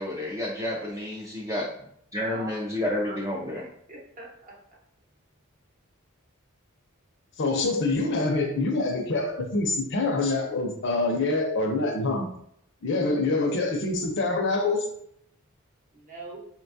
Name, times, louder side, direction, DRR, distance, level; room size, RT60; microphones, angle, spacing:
voice 1, 0.0-1.7 2.1-3.6, left 1 dB, 15° right, -3 dB, 0.4 m, -30 dB
voice 2, 2.2-2.6 3.0-4.6 15.9-16.4, right 2 dB, 40° right, -2 dB, 0.8 m, -43 dB
voice 3, 7.4-12.3 12.8-14.9, left 2 dB, 60° left, 3 dB, 0.6 m, -25 dB
3.9 x 2.2 x 2.6 m, 0.71 s
head